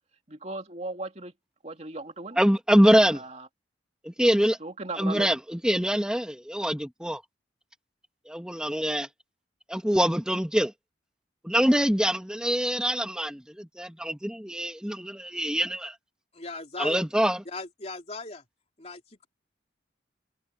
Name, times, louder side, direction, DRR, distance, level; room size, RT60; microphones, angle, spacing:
voice 1, 0.3-1.3 1.6-2.4 3.1-3.5 4.6-5.3, right 2 dB, 40° right, 2.5 m, -37 dB
voice 2, 2.4-3.2 4.0-4.6 5.0-7.2 8.3-9.1 9.7-10.7 11.4-15.9 16.8-17.4, equal, 5° right, 2.5 m, -24 dB
voice 3, 16.3-17.0 17.4-18.4 18.8-19.3, left 3 dB, 35° left, 3.3 m, -38 dB
head